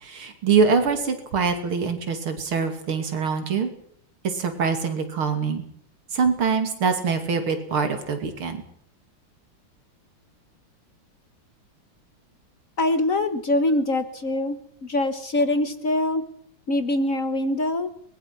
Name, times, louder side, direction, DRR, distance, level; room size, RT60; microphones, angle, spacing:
voice 1, 0.0-3.7 4.2-5.6 6.1-8.6, right 5 dB, 75° right, 7 dB, 3.4 m, -24 dB
voice 2, 12.8-16.2 16.7-17.9, left 1 dB, 45° left, 10 dB, 1.5 m, -24 dB
23.5 x 20.0 x 6.0 m, 0.66 s
omnidirectional pair, 2.3 m